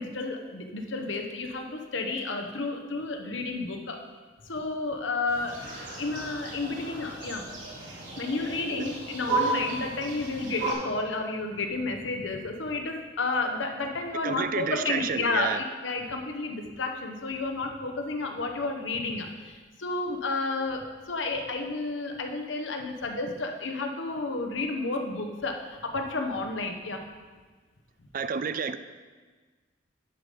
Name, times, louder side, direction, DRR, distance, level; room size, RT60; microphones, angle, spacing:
voice 1, 0.0-4.0 4.4-7.4 8.2-27.0, left 3 dB, 85° left, 4 dB, 1.0 m, -31 dB
sound 1, 5.3-10.7, right 3 dB, 85° right, 2.5 m, -34 dB
voice 2, 14.2-15.6 28.1-28.8, right 6 dB, 50° right, 12 dB, 0.4 m, -30 dB
10.5 x 5.4 x 4.9 m, 1.4 s
head